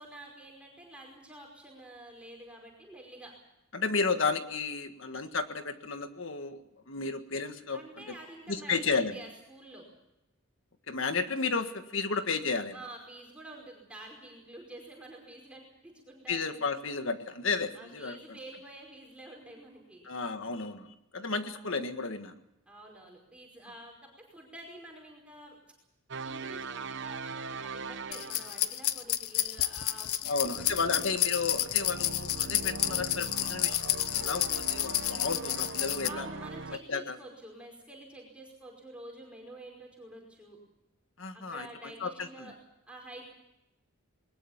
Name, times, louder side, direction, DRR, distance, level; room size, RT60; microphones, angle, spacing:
voice 1, 0.0-3.3 7.7-9.9 12.7-16.7 17.7-20.1 21.4-21.9 22.7-23.9 24.3-25.6 26.2-31.1 36.0-40.6 41.3-42.5 42.9-43.2, right 1 dB, 5° right, -1 dB, 5.1 m, -49 dB
voice 2, 3.7-6.6 6.9-7.8 8.5-9.2 10.9-12.7 16.3-18.2 20.0-22.3 30.2-33.8 34.1-36.3 36.9-37.2 41.2-42.5, left 4 dB, 60° left, 8 dB, 1.6 m, -33 dB
sound 1, 26.1-28.8 30.5-36.8, right 4 dB, 55° right, 0.9 m, -41 dB
sound 2, 28.1-36.1, left 13 dB, 80° left, 0.9 m, -30 dB
21.5 x 20.0 x 7.3 m, 0.88 s
head